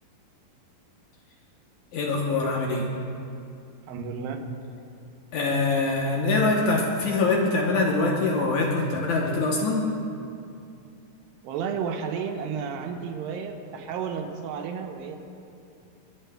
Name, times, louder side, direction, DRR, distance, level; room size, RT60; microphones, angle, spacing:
voice 1, 1.9-2.9 5.3-9.9, left 3 dB, 70° left, -1 dB, 2.0 m, -24 dB
voice 2, 3.9-4.4 11.4-15.2, right 6 dB, 85° right, 4 dB, 2.6 m, -32 dB
25.5 x 9.9 x 2.2 m, 2.5 s
omnidirectional pair, 4.1 m